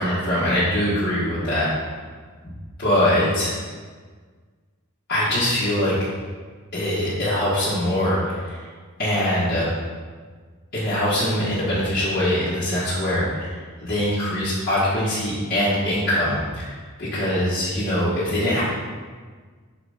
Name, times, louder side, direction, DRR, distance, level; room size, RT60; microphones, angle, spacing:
voice 1, 0.0-1.7 2.8-3.6 5.1-6.0 6.7-8.6 9.0-9.7 10.7-18.6, left 1 dB, 45° left, -11 dB, 1.6 m, -23 dB
6.6 x 4.0 x 4.9 m, 1.5 s
head